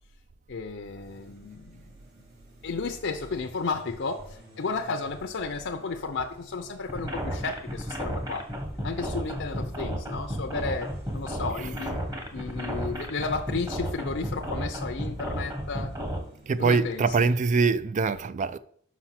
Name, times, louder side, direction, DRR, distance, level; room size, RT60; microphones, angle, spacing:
voice 1, 0.5-1.9 2.6-8.5 8.8-12.0 12.3-15.9 16.6-17.3, left 4 dB, 60° left, 0.6 m, -33 dB
sound 1, 1.0-17.8, equal, 50° right, 3.8 m, -55 dB
sound 2, 6.9-16.2, equal, 20° right, 1.2 m, -32 dB
voice 2, 16.5-18.6, right 4 dB, 35° right, 0.3 m, -23 dB
6.0 x 5.8 x 5.8 m
head